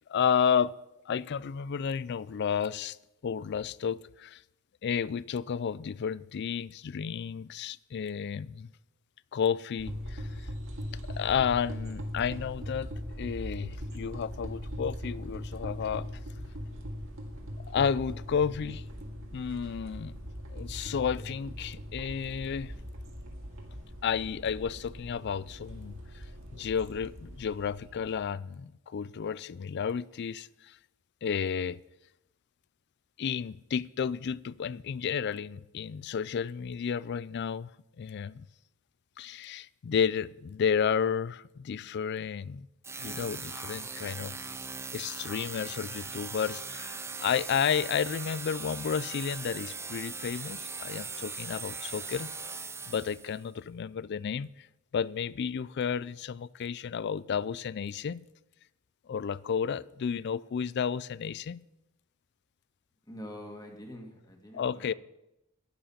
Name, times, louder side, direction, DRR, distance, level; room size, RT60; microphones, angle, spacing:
voice 1, 0.1-0.7 1.1-3.0 3.2-4.4 4.8-8.7 9.3-10.5 11.1-12.9 13.2-16.1 17.7-18.8 19.3-20.2 20.5-22.7 24.0-26.3 26.5-30.8 31.2-31.8 33.2-37.7 38.0-38.5 39.2-42.7 43.0-44.4 44.9-52.3 52.8-54.7 54.9-58.3 59.1-61.6 64.5-64.9, left 7 dB, 55° left, 0.4 m, -32 dB
sound 1, 9.8-28.3, equal, 65° right, 2.2 m, -40 dB
sound 2, 42.8-53.4, right 4 dB, 15° right, 0.6 m, -40 dB
voice 2, 63.1-65.0, equal, 20° left, 1.9 m, -45 dB
11.5 x 10.0 x 5.7 m
head